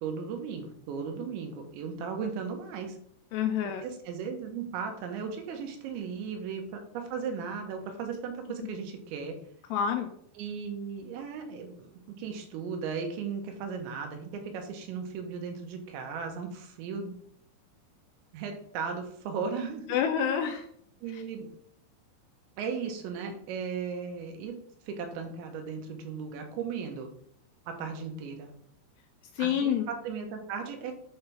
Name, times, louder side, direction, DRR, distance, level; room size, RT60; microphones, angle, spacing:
voice 1, 0.0-3.0 3.8-9.4 10.4-11.9 12.2-17.1 18.3-19.8 21.0-21.5 22.6-24.5 24.9-27.1 27.7-28.5 29.4-30.9, right 6 dB, 80° right, 4 dB, 3.2 m, -36 dB
voice 2, 3.3-3.8 9.7-10.1 19.9-20.7 21.1-21.2 29.4-29.9, left 8 dB, 80° left, 5 dB, 2.5 m, -28 dB
7.9 x 3.4 x 5.6 m, 0.66 s
omnidirectional pair, 5.3 m